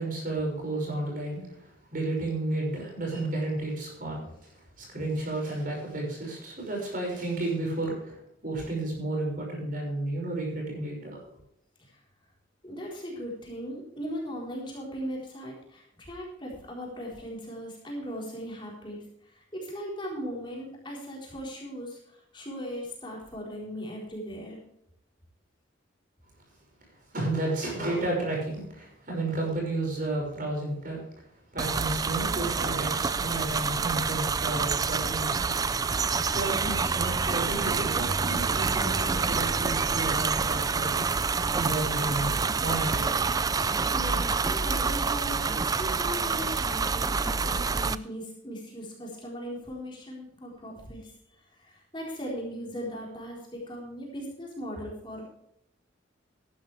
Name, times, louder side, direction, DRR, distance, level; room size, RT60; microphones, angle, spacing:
voice 1, 0.0-4.5 4.8-11.2 27.1-31.0 31.5-35.6 36.2-41.0 41.6-43.3, right 2 dB, 45° right, 0 dB, 6.0 m, -32 dB
voice 2, 12.6-24.6 43.9-51.1 51.5-55.3, equal, 25° left, -3 dB, 4.1 m, -38 dB
sound 1, 31.6-47.9, right 4 dB, 20° right, 0.3 m, -27 dB
14.5 x 12.0 x 3.4 m, 0.77 s
head